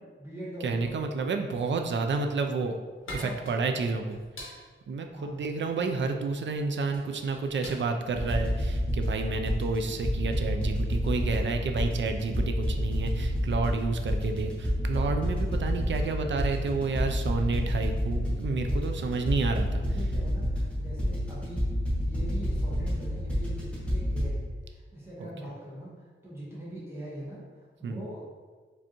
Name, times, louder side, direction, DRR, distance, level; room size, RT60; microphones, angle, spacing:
voice 1, 0.0-1.3 3.1-4.0 5.1-5.4 19.5-21.8 22.0-24.5 24.9-28.2, right 1 dB, 10° right, -8 dB, 1.3 m, -42 dB
voice 2, 0.6-2.7 3.1-4.6 4.9-19.8 27.8-28.0, right 4 dB, 60° right, 5 dB, 0.4 m, -30 dB
sound 1, 2.8-9.6, left 1 dB, 75° left, 1.2 m, -46 dB
sound 2, 8.1-24.3, equal, 5° left, 1.1 m, -29 dB
5.0 x 3.4 x 2.9 m, 1.4 s
wide cardioid pair, 155°, 21 cm